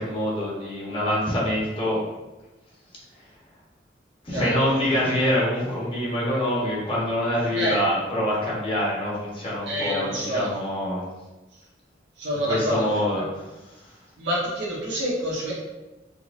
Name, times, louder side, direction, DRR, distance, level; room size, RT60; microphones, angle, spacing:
voice 1, 0.0-2.0 4.2-11.1 12.4-13.9, left 1 dB, 30° left, -6 dB, 0.9 m, -25 dB
voice 2, 9.7-10.5 12.2-12.8 13.2-13.3 14.2-15.5, equal, 80° right, -5 dB, 1.1 m, -27 dB
3.8 x 2.9 x 2.5 m, 1.1 s
head